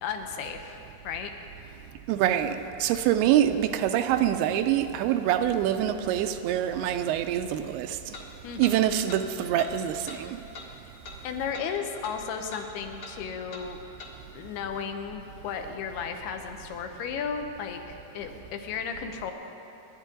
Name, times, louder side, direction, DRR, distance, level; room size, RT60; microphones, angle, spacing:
voice 1, 0.0-1.3 8.4-9.0 11.2-13.8 14.3-19.3, left 6 dB, 85° left, 3.0 m, -34 dB
voice 2, 2.1-8.0 8.6-10.4, right 11 dB, 85° right, 2.5 m, -25 dB
sound 1, 6.5-6.6 8.1-8.3 8.6-8.8 9.1-9.2 9.6-9.7 10.1-10.2 10.5-10.7 11.0-11.2 11.5-11.7 12.0-12.2 12.5-12.7 13.0-13.2 13.5-13.7 14.0-14.1, left 3 dB, 50° left, 1.6 m, -42 dB
28.5 x 11.0 x 3.9 m
omnidirectional pair, 4.5 m